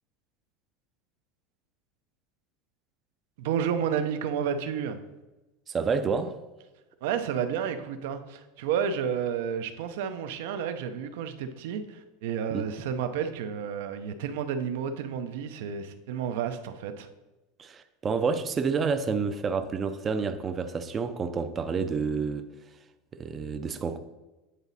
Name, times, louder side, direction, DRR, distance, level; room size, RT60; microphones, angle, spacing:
voice 1, 3.4-5.0 7.0-17.1, right 7 dB, 75° right, 9 dB, 0.7 m, -31 dB
voice 2, 5.7-6.4 12.5-12.6 17.6-22.5 23.2-24.0, right 5 dB, 20° right, 9 dB, 0.4 m, -29 dB
9.1 x 4.0 x 4.1 m, 1.1 s
supercardioid pair, 150°, 0 cm